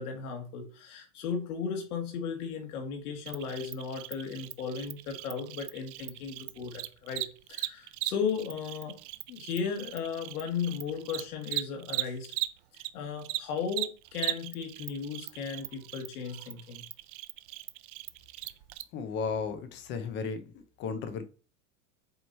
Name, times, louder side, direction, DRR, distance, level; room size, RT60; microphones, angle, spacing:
voice 1, 0.0-9.0 9.3-12.3 12.9-16.8, left 6 dB, 90° left, 2.1 m, -35 dB
Cricket, 3.3-12.9 13.2-18.8, right 17 dB, 55° right, 0.5 m, -38 dB
voice 2, 18.9-21.2, left 5 dB, 25° left, 0.6 m, -35 dB
7.8 x 3.1 x 4.2 m
supercardioid pair, 165°, 43 cm